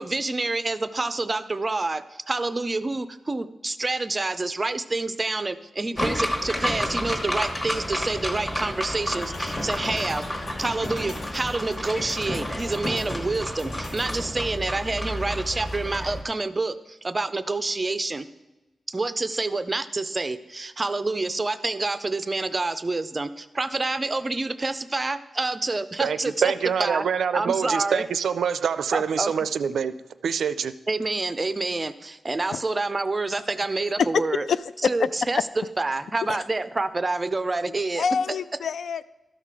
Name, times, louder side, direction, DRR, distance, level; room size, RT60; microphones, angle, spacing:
voice 1, 0.0-18.2 18.9-26.5 26.8-27.1 27.3-28.0 28.9-29.5 30.9-34.4 34.8-35.4 35.8-38.0, right 3 dB, 20° right, 0.4 m, -28 dB
sound 1, 6.0-16.2, equal, 15° left, 1.2 m, -30 dB
sound 2, 9.0-14.3, left 3 dB, 55° left, 0.8 m, -41 dB
voice 2, 26.0-29.9 30.2-30.7, right 7 dB, 90° right, 0.4 m, -25 dB
voice 3, 34.5-35.1 36.3-36.4 38.0-39.0, left 6 dB, 75° left, 0.3 m, -25 dB
13.0 x 5.8 x 4.7 m
wide cardioid pair, 175°, 0 cm